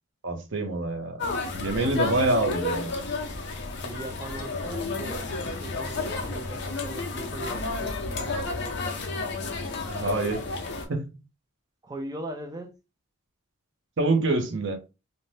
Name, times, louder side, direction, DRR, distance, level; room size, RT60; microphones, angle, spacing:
voice 1, 0.2-1.2 1.5-2.9 9.9-10.4 10.9-11.1 14.0-14.8, right 2 dB, 55° right, 0.6 m, -26 dB
sound 1, 1.2-10.8, left 3 dB, 50° left, 0.5 m, -31 dB
voice 2, 3.8-8.7 11.8-12.8, right 2 dB, 15° right, 0.4 m, -40 dB
2.6 x 2.1 x 3.1 m
head